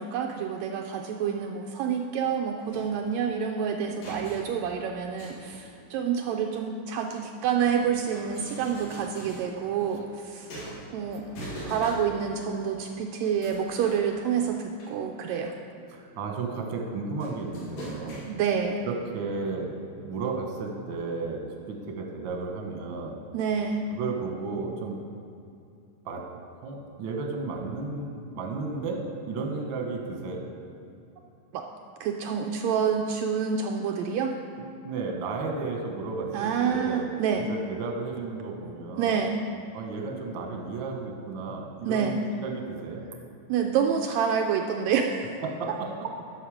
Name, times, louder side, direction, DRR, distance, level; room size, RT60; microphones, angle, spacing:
voice 1, 0.0-10.5 10.9-11.4 11.6-15.5 18.3-18.9 23.3-23.9 31.5-31.6 32.0-34.4 36.3-37.5 39.0-39.4 41.9-42.2 43.5-45.2, right 7 dB, 90° right, 2 dB, 1.5 m, -28 dB
sound 1, 2.7-6.0 6.8-12.3 12.7-12.9 13.4-15.7 16.0-16.4 17.2-18.7 19.6-19.7 20.5-20.6 20.9-21.0, right 1 dB, 80° left, 3.6 m, -44 dB
voice 2, 15.9-18.2 18.8-23.2 23.9-25.0 26.0-26.2 26.6-28.1 28.3-30.4 34.6-37.0 37.4-39.2 39.7-43.0 45.4-45.9, right 4 dB, 65° right, 1 dB, 1.2 m, -33 dB
11.0 x 6.5 x 4.9 m, 2.6 s
omnidirectional pair, 3.7 m